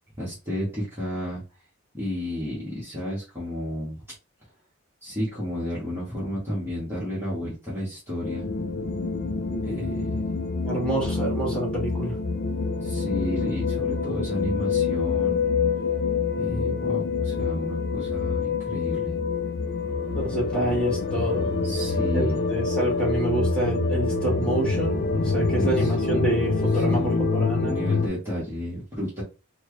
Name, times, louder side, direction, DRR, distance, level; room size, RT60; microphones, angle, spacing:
voice 1, 0.2-1.4 1.9-4.0 5.0-8.5 9.6-10.2 12.8-15.4 16.4-19.1 21.6-22.4 25.6-25.9 26.7-27.3 27.6-29.2, left 1 dB, 10° right, -9 dB, 1.4 m, -32 dB
sound 1, 8.2-28.1, left 4 dB, 50° left, 0.4 m, -26 dB
voice 2, 10.6-12.1 20.1-21.5 22.1-27.7, right 1 dB, 5° left, -4 dB, 1.7 m, -27 dB
4.4 x 2.2 x 3.2 m, 0.31 s
head